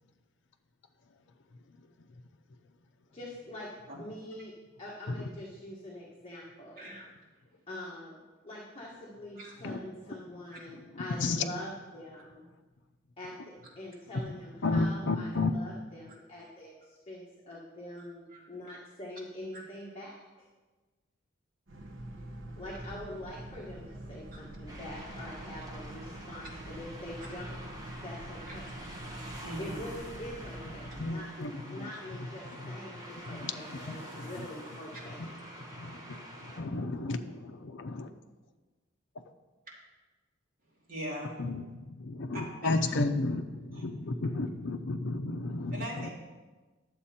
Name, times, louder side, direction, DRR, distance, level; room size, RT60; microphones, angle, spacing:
voice 1, 3.1-3.7 4.0-4.5 4.8-7.0 7.7-12.5 13.2-20.1 22.5-27.7 28.0-28.6 29.6-35.2, left 1 dB, 30° left, -4 dB, 1.4 m, -44 dB
voice 2, 6.8-7.1 9.3-9.5 10.5-10.6 18.0-18.1 18.3-18.8 19.5-19.6 24.3-24.4 28.5-28.6 29.4-29.7 34.9-35.1 40.9-41.3 42.3-42.7 43.7-43.8 45.7-46.1, equal, 45° right, -4 dB, 2.6 m, -41 dB
voice 3, 10.9-11.4 14.6-15.8 31.0-31.9 32.5-32.8 33.3-34.5 35.2-35.3 35.8-38.1 41.4-46.1, left 3 dB, 60° left, 5 dB, 0.6 m, -33 dB
Boat Water vehicle, 21.7-31.0, right 1 dB, 65° right, 1.0 m, -45 dB
sound 1, 24.7-36.6, equal, 20° right, 1.5 m, -47 dB
11.0 x 7.5 x 4.3 m, 1.3 s
head